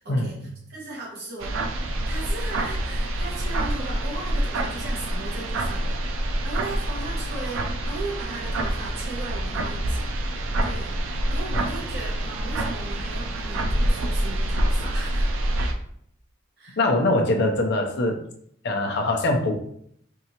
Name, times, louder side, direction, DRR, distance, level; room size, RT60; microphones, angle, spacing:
voice 1, 0.0-1.5 2.1-10.1 10.6-10.9 11.3-15.3 16.6-16.8, right 2 dB, 55° right, -4 dB, 1.4 m, -37 dB
sound 1, 1.4-15.7, right 1 dB, 90° right, 0.5 m, -26 dB
voice 2, 16.8-18.2 18.6-19.5, left 2 dB, 60° left, 2 dB, 0.6 m, -22 dB
4.5 x 2.8 x 2.8 m, 0.68 s
head